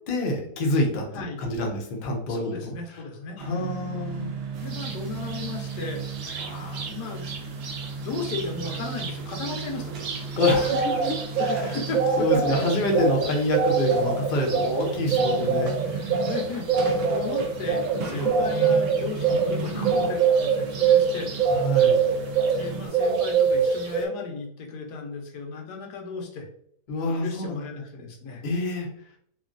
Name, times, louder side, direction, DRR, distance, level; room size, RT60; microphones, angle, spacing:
voice 1, 0.1-2.7 3.4-4.3 6.4-6.9 10.4-11.8 12.2-15.7 18.1-18.7 21.5-22.0 26.9-27.6 28.4-28.9, left 1 dB, 55° left, 0 dB, 0.6 m, -27 dB
voice 2, 2.3-3.7 4.6-6.0 6.6-7.5 7.7-10.0 11.5-12.4 15.9-16.7 17.0-21.3 22.5-26.5 27.1-28.4, left 4 dB, 85° left, 2 dB, 1.3 m, -35 dB
sound 1, 3.4-22.9, right 5 dB, 80° right, 0.5 m, -35 dB
sound 2, 4.7-4.9 5.3-6.9 7.2-7.4 7.6-22.7 22.9-24.0, right 6 dB, 65° right, 0.9 m, -24 dB
3.0 x 2.5 x 2.4 m, 0.66 s
omnidirectional pair, 1.7 m